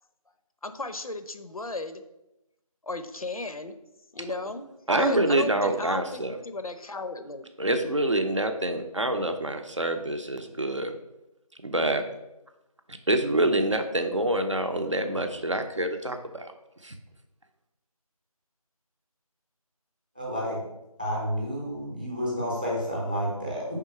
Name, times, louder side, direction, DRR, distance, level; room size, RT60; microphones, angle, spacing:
voice 1, 0.6-2.0 2.8-3.7 4.1-7.5, left 3 dB, 70° left, 10 dB, 0.6 m, -35 dB
voice 2, 4.9-6.4 7.6-10.9 11.6-12.0 12.9-16.5 16.8-17.0, right 1 dB, 55° right, 6 dB, 0.6 m, -26 dB
voice 3, 20.1-20.6 21.0-23.6, equal, 15° right, -4 dB, 0.8 m, -30 dB
4.8 x 3.7 x 5.5 m, 0.91 s
figure-of-eight pair, 170°, 19 cm